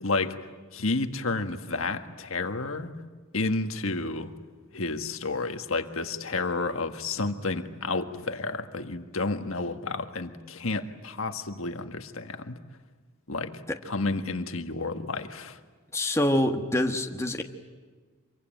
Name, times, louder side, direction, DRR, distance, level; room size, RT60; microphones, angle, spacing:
voice 1, 0.0-0.4 0.7-2.9 3.3-4.3 4.7-12.6 13.3-13.5 13.9-15.6, left 3 dB, 70° left, 7 dB, 1.6 m, -31 dB
voice 2, 15.9-17.4, left 1 dB, 15° left, 3 dB, 1.5 m, -25 dB
26.5 x 23.5 x 9.2 m, 1.4 s
head